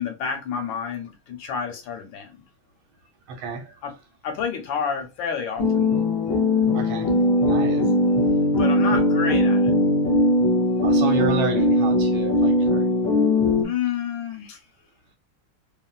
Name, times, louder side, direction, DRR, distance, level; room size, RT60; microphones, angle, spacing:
voice 1, 0.0-2.4 3.8-3.9 4.2-6.0 8.6-9.7 13.6-14.6, left 6 dB, 75° left, 1.2 m, -29 dB
voice 2, 3.3-3.7 6.7-7.1 7.4-7.9 10.8-12.9, right 5 dB, 85° right, 1.6 m, -30 dB
sound 1, 5.6-13.6, left 1 dB, 5° left, 1.2 m, -20 dB
3.0 x 2.6 x 2.2 m
omnidirectional pair, 2.3 m